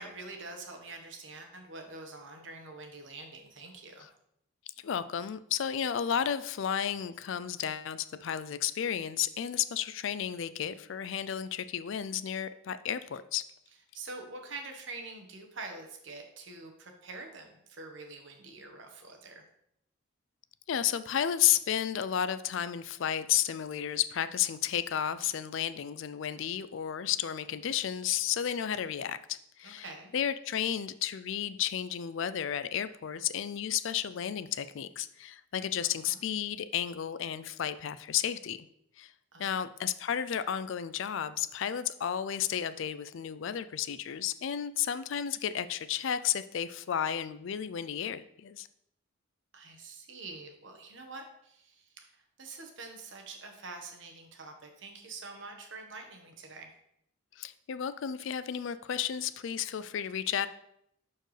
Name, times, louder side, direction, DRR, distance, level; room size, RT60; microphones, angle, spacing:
voice 1, 0.0-4.1 13.9-19.4 29.6-30.1 35.8-36.2 39.3-39.6 49.5-56.7, right 3 dB, 60° right, 4 dB, 1.2 m, -46 dB
voice 2, 4.8-13.5 20.7-29.9 30.1-38.6 39.0-39.1 39.4-48.7 57.4-60.5, left 9 dB, 60° left, 14 dB, 0.4 m, -32 dB
11.0 x 4.5 x 3.2 m, 0.75 s
head